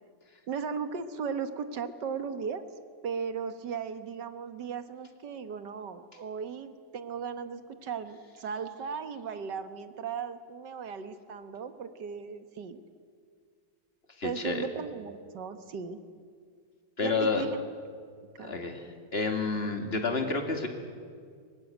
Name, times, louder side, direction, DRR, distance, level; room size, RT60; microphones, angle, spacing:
voice 1, 0.5-2.6 3.0-12.8 14.2-16.0 17.0-17.7 18.4-18.5, right 6 dB, 65° right, 10 dB, 1.9 m, -37 dB
voice 2, 14.2-14.7 17.0-17.4 18.4-20.7, left 4 dB, 30° left, 4 dB, 2.4 m, -30 dB
24.0 x 19.5 x 9.2 m, 2.1 s
omnidirectional pair, 2.1 m